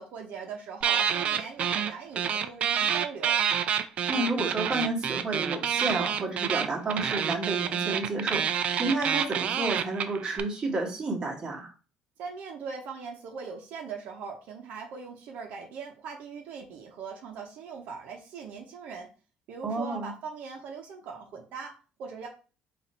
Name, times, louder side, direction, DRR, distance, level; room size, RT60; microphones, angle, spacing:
voice 1, 0.0-3.4 12.2-19.1 19.5-22.3, right 5 dB, 70° right, 1 dB, 0.8 m, -40 dB
sound 1, 0.8-10.4, right 8 dB, 50° right, 0.4 m, -28 dB
voice 2, 4.1-11.7 19.6-20.1, right 2 dB, 25° right, -1 dB, 1.3 m, -31 dB
4.1 x 2.5 x 4.2 m, 0.35 s
cardioid pair, 150°, 3 cm